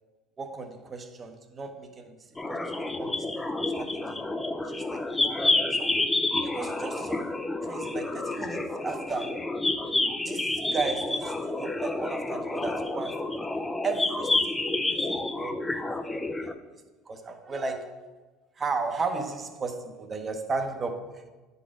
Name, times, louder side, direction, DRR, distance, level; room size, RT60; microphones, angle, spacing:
voice 1, 0.4-2.1 2.5-3.3 3.8-4.2 4.6-5.2 5.7-6.0 6.4-7.3 7.6-9.5 10.2-13.4 13.8-16.5 17.1-18.1 18.6-21.2, right 4 dB, 30° right, 6 dB, 0.9 m, -35 dB
sound 1, 2.4-16.5, left 2 dB, 15° left, 0.5 m, -29 dB
9.8 x 4.0 x 3.7 m, 1.3 s
supercardioid pair, 100°, 0 cm